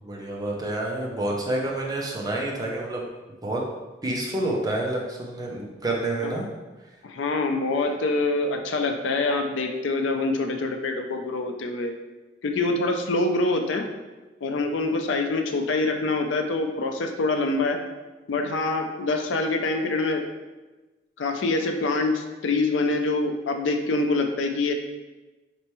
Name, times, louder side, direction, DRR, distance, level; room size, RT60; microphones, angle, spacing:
voice 1, 0.0-3.0 3.4-3.7 4.0-6.5, right 1 dB, 20° right, -2 dB, 0.6 m, -28 dB
voice 2, 7.0-12.0 12.4-13.8 14.4-17.8 18.3-20.2 21.2-24.7, left 2 dB, 75° left, 5 dB, 0.4 m, -25 dB
4.2 x 3.4 x 3.0 m, 1.2 s
head